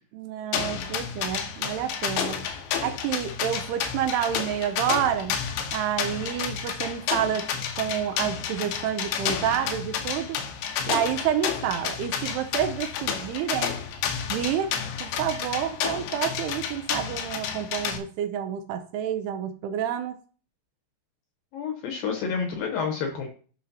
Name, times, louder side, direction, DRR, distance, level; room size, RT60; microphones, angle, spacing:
voice 1, 0.1-2.5 2.8-5.4 5.7-7.5 7.8-10.4 10.9-13.8 14.3-14.7 15.0-20.2, right 9 dB, 80° right, 7 dB, 2.5 m, -29 dB
sound 1, 0.5-18.0, left 8 dB, 90° left, 3.3 m, -31 dB
voice 2, 21.5-23.3, left 6 dB, 70° left, 4 dB, 2.3 m, -29 dB
11.5 x 6.0 x 2.8 m, 0.41 s
omnidirectional pair, 5.0 m